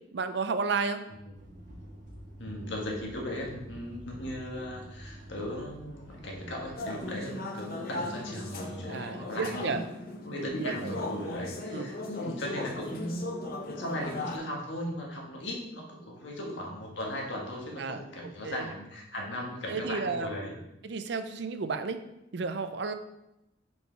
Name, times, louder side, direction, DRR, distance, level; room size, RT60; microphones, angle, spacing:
voice 1, 0.1-1.0 7.2-7.3 8.9-9.8 10.3-10.7 11.7-11.9 17.8-18.0 18.4-18.6 19.7-20.3 20.8-22.0 22.3-22.9, right 4 dB, 65° right, 9 dB, 0.5 m, -32 dB
sound 1, 1.3-7.0, equal, 45° right, 1.5 m, -48 dB
voice 2, 2.4-9.8 10.2-13.2 13.6-20.6, left 1 dB, 80° left, -1 dB, 1.6 m, -37 dB
sound 2, 6.8-14.4, left 2 dB, 50° left, 0.8 m, -37 dB
5.5 x 4.7 x 4.5 m, 0.90 s
head